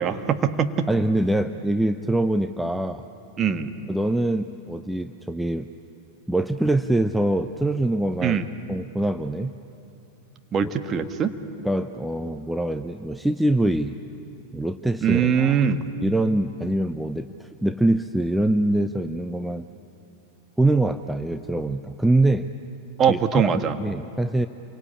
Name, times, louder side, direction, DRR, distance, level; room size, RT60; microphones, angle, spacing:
voice 1, 0.0-0.9 3.4-3.7 8.2-8.4 10.5-11.3 15.0-15.8 23.0-23.8, right 7 dB, 25° right, 7 dB, 1.4 m, -22 dB
voice 2, 0.9-3.1 3.9-5.7 6.3-8.4 8.7-9.5 10.6-11.0 11.6-14.0 14.5-15.6 16.0-19.7 20.6-22.5 23.1-24.5, right 1 dB, 5° right, 9 dB, 0.6 m, -24 dB
28.5 x 23.5 x 8.6 m, 2.7 s
figure-of-eight pair, 90°, 0 cm